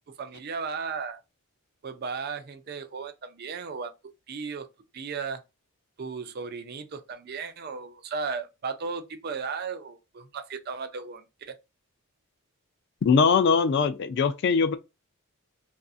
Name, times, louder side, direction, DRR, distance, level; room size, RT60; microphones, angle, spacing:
voice 1, 0.1-1.2 1.8-3.9 4.3-4.7 4.9-5.4 6.0-11.5, right 5 dB, 45° right, 0.4 m, -35 dB
voice 2, 13.0-14.8, left 5 dB, 50° left, 0.3 m, -21 dB
2.6 x 2.4 x 2.3 m
head